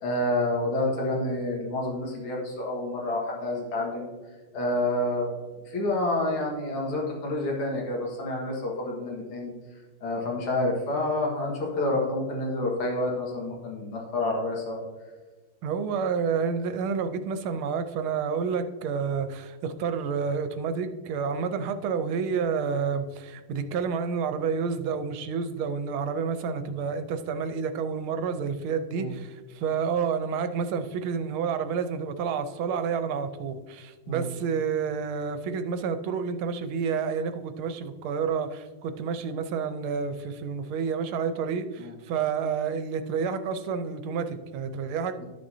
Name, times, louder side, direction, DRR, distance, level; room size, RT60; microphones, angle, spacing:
voice 1, 0.0-4.1 4.5-5.3 5.7-9.5 10.0-14.8 28.9-29.1 34.1-34.3 41.8-41.9 45.2-45.3, left 1 dB, 90° left, -2 dB, 2.6 m, -28 dB
voice 2, 15.6-45.2, right 6 dB, 85° right, 9 dB, 1.6 m, -29 dB
12.0 x 6.6 x 2.7 m, 1.3 s
omnidirectional pair, 2.3 m